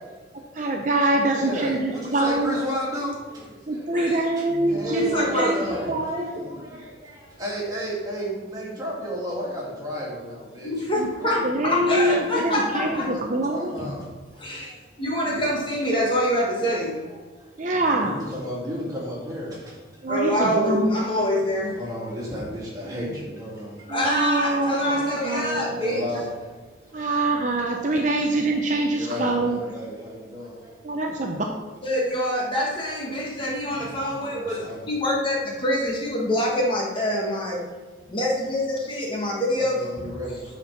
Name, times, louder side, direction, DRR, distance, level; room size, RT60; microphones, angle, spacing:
voice 1, 0.3-2.6 3.7-6.5 11.0-11.1 11.4-13.8 17.6-18.2 20.0-20.9 22.9-23.1 23.9-26.2 26.9-29.6 30.8-31.4, right 2 dB, 40° right, 2 dB, 0.6 m, -25 dB
voice 2, 1.3-3.4 3.7-3.8 4.6-10.7 13.1-14.0 15.2-15.3 17.7-19.6 21.8-23.7 24.6-25.4 25.8-26.3 29.0-30.6 33.0-33.2 34.2-34.8 39.5-40.4, equal, 20° right, -5 dB, 2.4 m, -33 dB
voice 3, 4.9-5.5 10.6-13.1 13.8-13.9 14.4-14.7 15.0-17.0 20.1-21.8 23.9-26.0 31.8-37.6 38.1-40.1, left 1 dB, 25° left, -3 dB, 1.4 m, -25 dB
8.3 x 4.5 x 5.8 m, 1.4 s
head